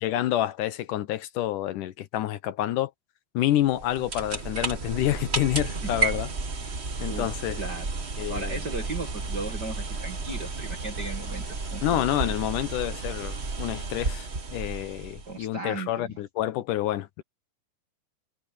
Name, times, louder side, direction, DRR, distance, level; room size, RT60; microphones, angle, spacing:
voice 1, 0.0-2.9 3.3-6.3 7.0-7.6 8.2-8.6 11.8-17.2, left 13 dB, 75° left, 2.3 m, -28 dB
sound 1, 3.6-15.4, right 3 dB, 55° right, 0.7 m, -32 dB
voice 2, 7.6-7.9 8.3-12.0 15.3-16.1, right 3 dB, 40° right, 1.9 m, -36 dB
omnidirectional pair, 3.9 m